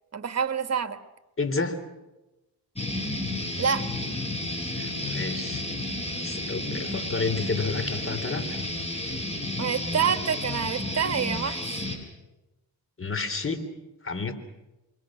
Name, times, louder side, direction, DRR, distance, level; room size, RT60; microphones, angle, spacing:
voice 1, 0.1-1.0 3.6-3.9 9.6-11.8, right 7 dB, 40° right, 10 dB, 1.8 m, -27 dB
voice 2, 1.4-1.8 4.7-5.7 6.2-8.6 13.0-13.6 14.0-14.3, left 4 dB, 35° left, 10 dB, 3.6 m, -30 dB
sound 1, 2.8-12.0, left 1 dB, 15° left, 7.1 m, -32 dB
28.0 x 23.5 x 6.5 m, 1.0 s
cardioid pair, 75°, 38 cm